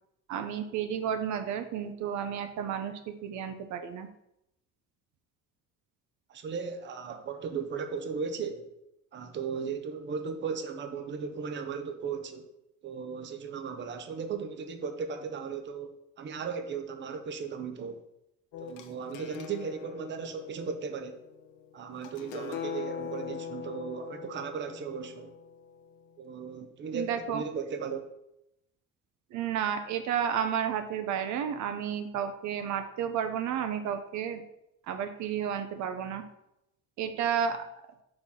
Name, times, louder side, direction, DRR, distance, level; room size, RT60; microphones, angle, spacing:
voice 1, 0.3-4.1 26.9-27.4 29.3-34.4 34.9-36.2 37.0-37.6, right 8 dB, 70° right, 8 dB, 0.8 m, -32 dB
voice 2, 6.3-8.7 9.1-12.5 12.8-18.0 18.6-21.2 21.7-25.3 26.2-28.1, right 6 dB, 40° right, 7 dB, 0.8 m, -36 dB
sound 1, 18.5-26.2, left 8 dB, 85° left, 0.9 m, -42 dB
6.2 x 4.1 x 6.2 m, 0.83 s
cardioid pair, 140°, 30 cm